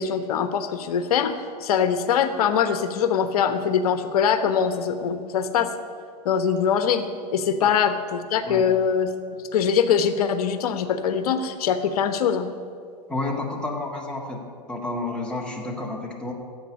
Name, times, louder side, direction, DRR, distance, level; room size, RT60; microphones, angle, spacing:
voice 1, 0.0-5.7 6.2-9.1 9.5-12.5, left 7 dB, 60° left, 10 dB, 1.1 m, -23 dB
voice 2, 13.1-16.3, left 2 dB, 5° left, -2 dB, 1.8 m, -30 dB
10.5 x 8.1 x 9.7 m, 2.2 s
hypercardioid pair, 105°, 21 cm